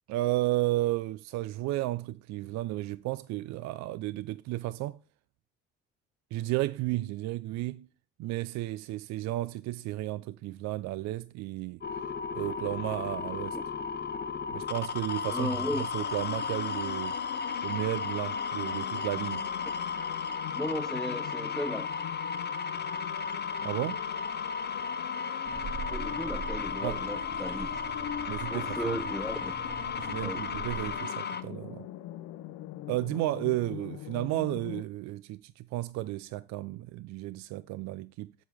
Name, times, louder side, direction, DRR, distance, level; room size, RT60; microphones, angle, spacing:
voice 1, 0.1-5.0 6.3-7.9 8.2-11.8 12.3-13.6 14.5-17.2 17.6-19.4 23.6-24.0 26.8-27.0 28.3-29.0 30.0-31.9 32.9-38.3, right 17 dB, 70° right, 0.4 m, -33 dB
sound 1, 11.8-31.4, left 6 dB, 35° left, 1.0 m, -34 dB
voice 2, 15.3-15.8 20.6-21.9 25.9-27.8 28.5-29.5 30.2-30.4, left 1 dB, ahead, 0.5 m, -35 dB
sound 2, 15.9-34.8, left 12 dB, 70° left, 0.6 m, -43 dB
sound 3, 25.4-31.0, right 4 dB, 55° right, 3.2 m, -43 dB
7.9 x 7.4 x 3.4 m
supercardioid pair, 75°, 29 cm